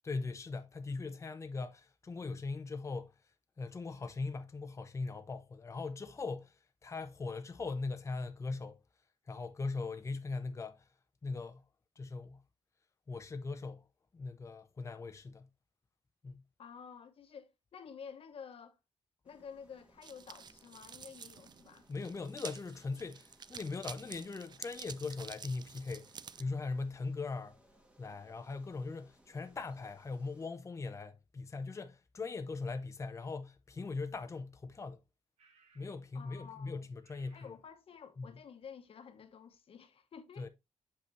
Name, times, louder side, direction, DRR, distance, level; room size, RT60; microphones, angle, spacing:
voice 1, 0.0-3.1 3.6-8.8 9.3-10.9 11.2-11.6 12.0-12.4 13.1-13.9 14.1-15.5 16.2-16.4 21.9-27.6 28.0-35.0 35.7-37.5 38.2-38.3 40.4-40.5, left 3 dB, 25° left, 0.7 m, -40 dB
voice 2, 16.6-18.8 19.2-21.9 36.1-36.8 37.3-40.5, left 7 dB, 60° left, 1.2 m, -51 dB
sound 1, 19.2-30.5, right 1 dB, 10° right, 1.5 m, -66 dB
sound 2, 20.0-26.4, right 6 dB, 40° right, 0.4 m, -50 dB
sound 3, 35.4-36.0 36.3-36.6 37.0-37.6, right 5 dB, 80° right, 1.7 m, -67 dB
6.9 x 5.2 x 3.1 m
cardioid pair, 95°, 11 cm